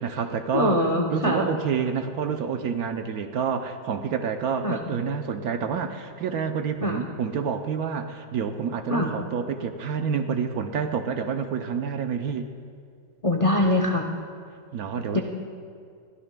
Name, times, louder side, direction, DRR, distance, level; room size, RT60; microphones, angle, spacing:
voice 1, 0.0-12.4 14.7-15.2, right 6 dB, 70° right, 6 dB, 1.0 m, -28 dB
voice 2, 0.5-1.5 4.6-4.8 6.8-7.0 8.9-9.1 13.2-14.0 15.1-15.2, left 1 dB, 45° left, 1 dB, 0.4 m, -23 dB
22.0 x 15.5 x 2.2 m, 2.2 s
omnidirectional pair, 1.9 m